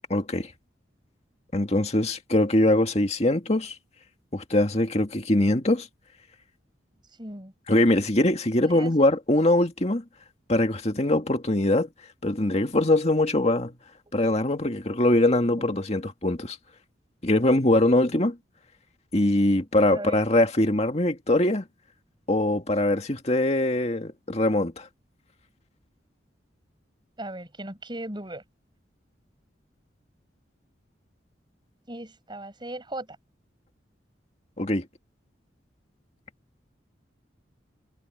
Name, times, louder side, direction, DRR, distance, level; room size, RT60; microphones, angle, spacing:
voice 1, 0.1-0.5 1.5-3.7 4.3-5.9 7.7-10.0 10.5-11.9 12.2-13.7 14.1-16.6 17.2-18.4 19.1-21.6 22.3-24.9 34.6-34.9, left 1 dB, 35° left, 2.0 m, -22 dB
voice 2, 7.2-7.5 8.6-9.1 15.6-15.7 19.9-20.2 27.2-28.4 31.9-33.2, right 1 dB, 25° right, 6.0 m, -37 dB
head